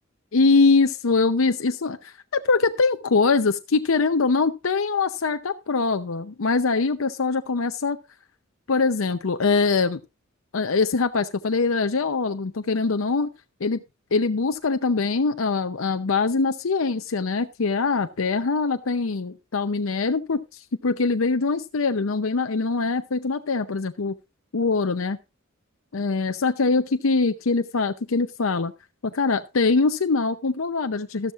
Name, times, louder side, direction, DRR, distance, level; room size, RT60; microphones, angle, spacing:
voice 1, 0.3-8.0 8.7-10.0 10.5-13.3 13.6-13.8 14.1-24.1 24.5-25.2 25.9-28.7 29.0-31.3, left 4 dB, 80° left, 8 dB, 0.7 m, -23 dB
13.0 x 13.0 x 2.5 m, 0.26 s
head